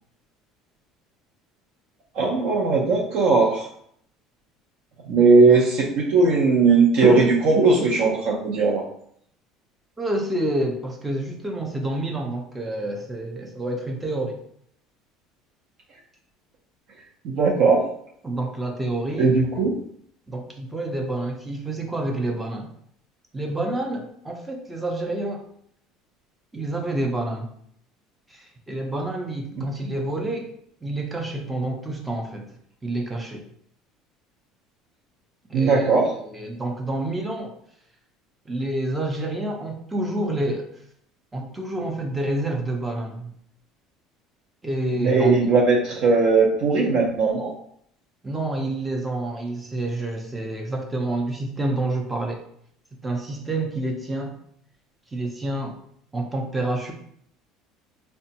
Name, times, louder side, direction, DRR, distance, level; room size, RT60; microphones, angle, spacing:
voice 1, 2.2-3.7 5.1-8.8 17.2-17.8 19.2-19.7 29.8-29.9 35.5-36.0 45.0-47.5, right 4 dB, 50° right, -2 dB, 0.6 m, -18 dB
voice 2, 10.0-14.4 18.2-19.3 20.3-22.7 23.3-25.4 26.5-27.5 28.3-30.5 30.8-32.5 32.8-33.5 35.5-35.8 36.1-37.5 38.5-40.7 41.3-43.3 44.6-45.5 48.2-52.4 53.0-54.4 55.1-55.8 56.1-56.9, right 2 dB, 10° right, 2 dB, 0.5 m, -28 dB
4.9 x 2.2 x 2.8 m, 0.66 s
cardioid pair, 175°, 0 cm